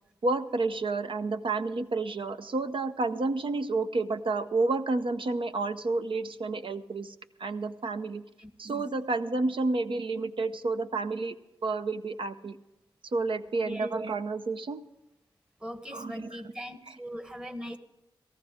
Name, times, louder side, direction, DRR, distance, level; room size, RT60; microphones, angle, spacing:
voice 1, 0.2-8.2 8.6-11.4 11.6-12.6 13.0-14.8 15.9-16.4, right 3 dB, 65° right, 10 dB, 0.7 m, -30 dB
voice 2, 15.6-17.8, equal, 10° right, 9 dB, 1.2 m, -40 dB
18.0 x 14.0 x 3.6 m, 0.97 s
cardioid pair, 50°, 10 cm